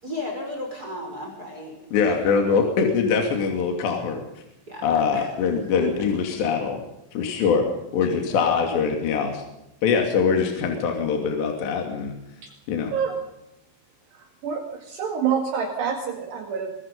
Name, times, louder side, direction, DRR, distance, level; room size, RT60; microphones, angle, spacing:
voice 1, 0.0-1.8 2.1-2.6 4.7-4.8 5.1-5.3 5.8-6.1 8.3-8.4, left 1 dB, 20° right, 1 dB, 5.6 m, -34 dB
voice 2, 1.9-4.2 4.8-6.8 7.1-9.4 9.8-12.1 12.7-12.9, left 5 dB, 60° left, 3 dB, 4.6 m, -23 dB
voice 3, 14.4-16.8, right 7 dB, 60° right, 3 dB, 3.8 m, -27 dB
24.5 x 21.0 x 5.4 m, 0.88 s
omnidirectional pair, 5.9 m